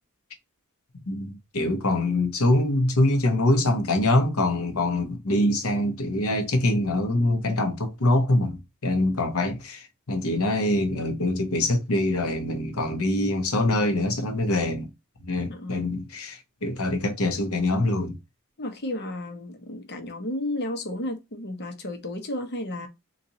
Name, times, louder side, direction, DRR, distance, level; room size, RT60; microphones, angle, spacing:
voice 1, 1.1-14.9 15.2-18.2, left 1 dB, 80° left, 1.0 m, -24 dB
voice 2, 15.5-16.0 18.6-22.9, left 1 dB, 50° left, 0.9 m, -33 dB
4.0 x 2.6 x 2.8 m
head